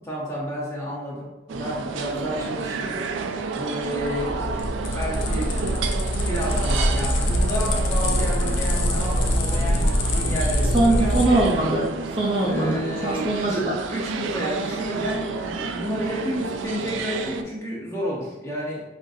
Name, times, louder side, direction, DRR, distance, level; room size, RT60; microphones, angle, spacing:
voice 1, 0.0-3.0 3.5-4.5 4.9-5.9 6.2-11.3 12.4-13.6 13.9-18.8, equal, 15° left, -5 dB, 1.0 m, -31 dB
sound 1, 1.5-17.4, right 4 dB, 85° right, 0.4 m, -31 dB
sound 2, 3.9-11.6, equal, 80° left, 0.5 m, -24 dB
voice 2, 10.7-13.7, right 2 dB, 30° right, -3 dB, 0.5 m, -22 dB
5.5 x 2.5 x 2.6 m, 1.0 s
head